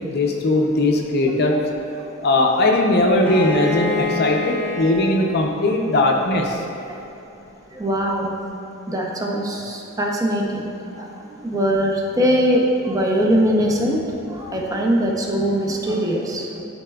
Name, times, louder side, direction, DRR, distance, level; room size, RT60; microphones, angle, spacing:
voice 1, 0.0-1.6 2.2-6.6, left 2 dB, 50° left, 1 dB, 0.5 m, -19 dB
Bowed string instrument, 3.2-6.9, left 3 dB, 10° left, 0.9 m, -28 dB
voice 2, 7.7-8.3 8.9-10.6 11.0-16.6, equal, 15° right, -1 dB, 0.6 m, -21 dB
11.0 x 4.2 x 2.3 m, 2.9 s
head